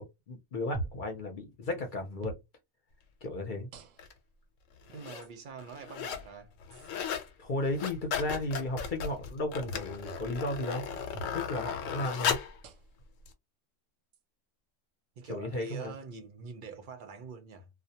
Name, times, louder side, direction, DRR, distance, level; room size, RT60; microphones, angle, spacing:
voice 1, 0.0-2.4 3.2-3.7 7.4-10.8 11.2-12.4 15.3-15.9, left 1 dB, 50° left, 0.7 m, -34 dB
sound 1, 0.7-1.1 2.2-2.5 3.7-4.2 5.2-5.3 6.7-6.9 9.6-9.9 11.1-11.4 12.6-13.0 14.1-14.2 15.6-15.8, right 2 dB, 85° right, 1.0 m, -42 dB
sound 2, 4.0-4.1 4.8-5.3 5.6-6.3 6.6-7.3 7.6-12.6 13.3-13.4, left 7 dB, 85° left, 0.9 m, -36 dB
voice 2, 4.9-6.5 15.2-17.7, right 5 dB, 55° right, 0.6 m, -45 dB
2.3 x 2.1 x 2.7 m
omnidirectional pair, 1.3 m